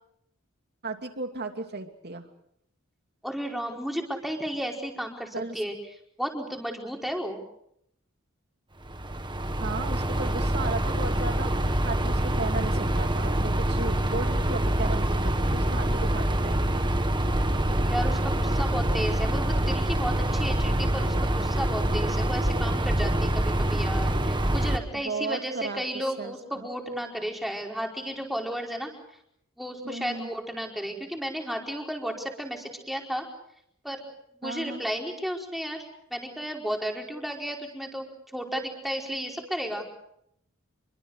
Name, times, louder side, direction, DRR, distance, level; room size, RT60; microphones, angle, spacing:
voice 1, 0.8-2.3 5.3-5.6 9.6-16.8 24.9-25.8 26.2-26.7 29.8-30.3 34.4-34.8, right 3 dB, 50° right, 6 dB, 2.8 m, -35 dB
voice 2, 3.2-5.8 6.2-7.4 17.8-28.9 29.6-33.3 33.8-34.0 34.4-35.8 36.1-39.9, equal, ahead, 1 dB, 4.6 m, -33 dB
sound 1, 8.9-24.8, right 1 dB, 20° right, 1.6 m, -25 dB
28.0 x 23.5 x 6.6 m, 0.74 s
head